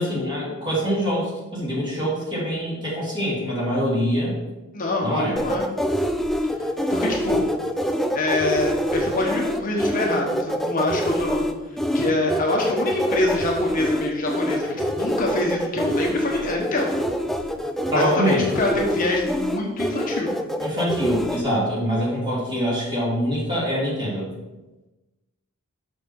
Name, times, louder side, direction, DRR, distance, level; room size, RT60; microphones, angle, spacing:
voice 1, 0.0-4.3 5.0-5.3 17.9-18.4 20.6-24.3, equal, 20° right, -6 dB, 2.9 m, -24 dB
voice 2, 4.7-5.6 6.9-7.5 8.1-11.5 11.9-16.9 17.9-20.3, left 2 dB, 40° left, -1 dB, 1.1 m, -25 dB
sound 1, 5.4-21.4, equal, ahead, 0.4 m, -25 dB
6.6 x 6.3 x 4.6 m, 1.1 s
head